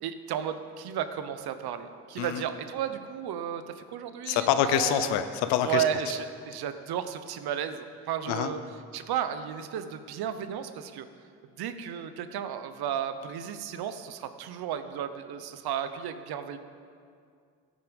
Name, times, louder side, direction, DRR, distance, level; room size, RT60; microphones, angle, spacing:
voice 1, 0.0-5.1 5.6-8.6 8.9-11.1 11.6-16.6, right 9 dB, 70° right, 10 dB, 0.9 m, -33 dB
voice 2, 4.3-5.8 8.3-8.5, left 11 dB, 90° left, 10 dB, 0.8 m, -26 dB
15.0 x 9.0 x 5.3 m, 2.2 s
supercardioid pair, 60°, 39 cm